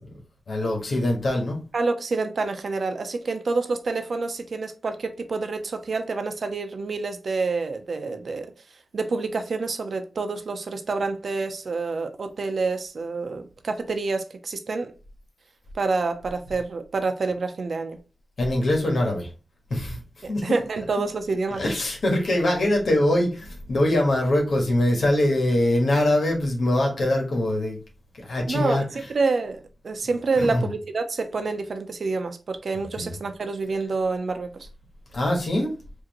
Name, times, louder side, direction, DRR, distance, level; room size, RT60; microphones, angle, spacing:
voice 1, 0.5-1.6 18.4-19.3 19.7-20.0 20.3-20.4 21.6-27.8 28.2-28.8 30.4-30.7 33.0-33.1 35.1-35.7, left 1 dB, 80° left, 1.4 m, -23 dB
voice 2, 1.7-8.5 8.9-14.9 15.7-18.0 20.2-21.6 28.5-34.7, right 3 dB, 75° right, 0.7 m, -27 dB
4.9 x 2.8 x 3.0 m
cardioid pair, 60°, 0 cm